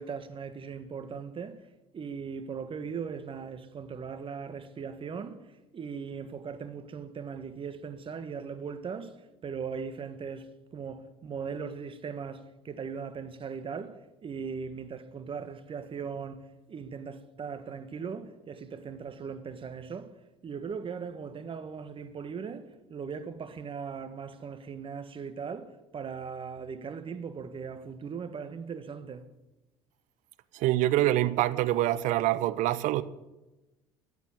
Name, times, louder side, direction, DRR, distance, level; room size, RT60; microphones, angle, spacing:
voice 1, 0.0-1.6 1.9-20.1 20.4-29.2, right 6 dB, 40° right, 1.6 m, -39 dB
voice 2, 30.5-33.0, right 15 dB, 60° right, 0.8 m, -25 dB
14.0 x 8.3 x 8.1 m
hypercardioid pair, 65°, 14 cm